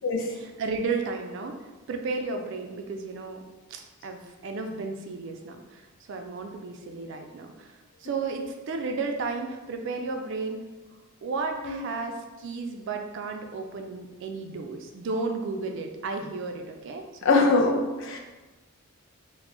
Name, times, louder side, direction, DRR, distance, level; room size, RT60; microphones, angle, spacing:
voice 1, 0.3-1.6 1.9-3.4 3.7-10.6 11.2-17.0 17.4-17.6, right 4 dB, 55° right, 4 dB, 0.3 m, -33 dB
voice 2, 17.2-18.2, left 3 dB, 60° left, 0 dB, 0.4 m, -23 dB
2.2 x 2.0 x 3.6 m, 1.1 s
head